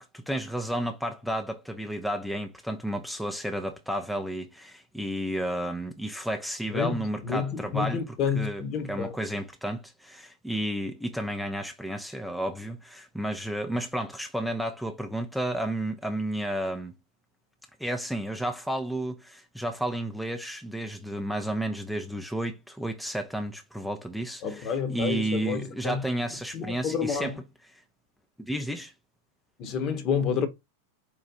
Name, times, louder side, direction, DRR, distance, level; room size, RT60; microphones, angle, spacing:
voice 1, 0.0-17.0 17.8-27.4 28.4-28.9, right 1 dB, ahead, 0.5 m, -32 dB
voice 2, 6.7-9.2 24.4-26.0 26.5-27.3 29.6-30.5, left 6 dB, 35° left, 1.0 m, -29 dB
4.7 x 2.4 x 4.0 m
figure-of-eight pair, 90°, 0 cm